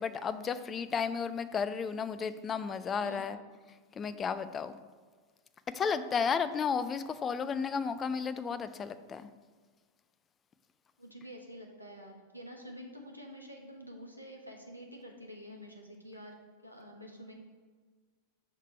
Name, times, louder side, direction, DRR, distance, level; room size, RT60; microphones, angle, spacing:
voice 1, 0.0-3.4 4.0-4.8 5.7-9.3, left 6 dB, 20° left, 12 dB, 0.4 m, -33 dB
voice 2, 3.0-3.3 11.0-16.4 16.6-17.4, equal, 90° right, 1 dB, 1.0 m, -48 dB
6.4 x 3.6 x 5.6 m, 1.5 s
figure-of-eight pair, 90°, 0 cm